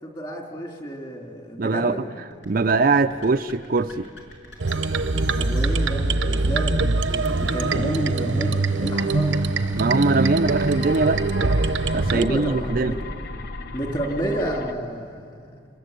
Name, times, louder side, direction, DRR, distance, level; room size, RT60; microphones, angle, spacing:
voice 1, 0.0-2.0 5.4-6.8 7.1-9.4 12.1-13.0 13.7-15.3, right 1 dB, 25° left, 0 dB, 3.5 m, -30 dB
voice 2, 1.6-1.9 2.5-4.1 9.8-11.2 11.9-12.9, right 3 dB, 50° right, 8 dB, 0.5 m, -21 dB
sound 1, 2.3-12.0, left 1 dB, 75° left, 5.6 m, -45 dB
sound 2, 4.6-12.2, right 3 dB, 80° right, 0.9 m, -23 dB
sound 3, 9.8-14.7, left 2 dB, 55° left, 0.9 m, -35 dB
27.0 x 21.5 x 8.3 m, 2.3 s
head